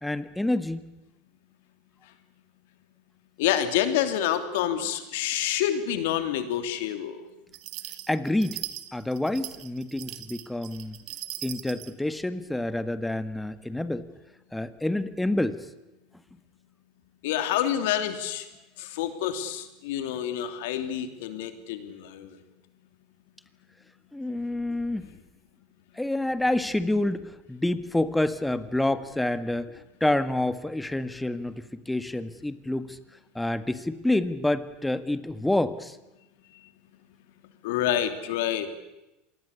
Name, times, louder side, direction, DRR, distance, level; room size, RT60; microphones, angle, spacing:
voice 1, 0.0-0.8 8.1-8.6 8.9-11.0 11.4-14.1 14.5-15.6 24.1-25.1 26.0-33.0 33.3-36.0, left 1 dB, 5° left, 12 dB, 1.7 m, -28 dB
voice 2, 3.4-7.2 17.2-18.4 18.8-22.3 37.6-38.7, left 10 dB, 75° left, 9 dB, 3.0 m, -28 dB
sound 1, 7.5-11.9, right 15 dB, 60° right, 2.0 m, -39 dB
26.5 x 20.0 x 8.4 m, 0.99 s
hypercardioid pair, 95°, 0 cm